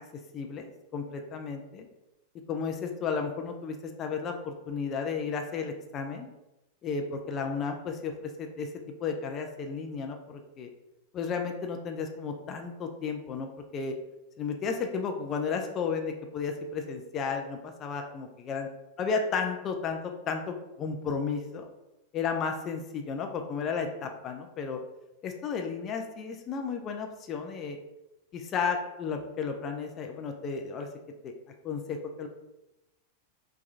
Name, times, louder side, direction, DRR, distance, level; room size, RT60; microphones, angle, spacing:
voice 1, 0.3-1.9 2.5-6.3 6.8-8.7 9.0-10.7 11.1-14.0 14.4-18.7 19.0-21.7 22.1-24.8 25.2-27.8 28.3-30.9 31.2-31.3 31.6-32.3, left 5 dB, 30° left, 4 dB, 0.4 m, -33 dB
4.2 x 2.3 x 2.4 m, 0.95 s
figure-of-eight pair, 90°, 0 cm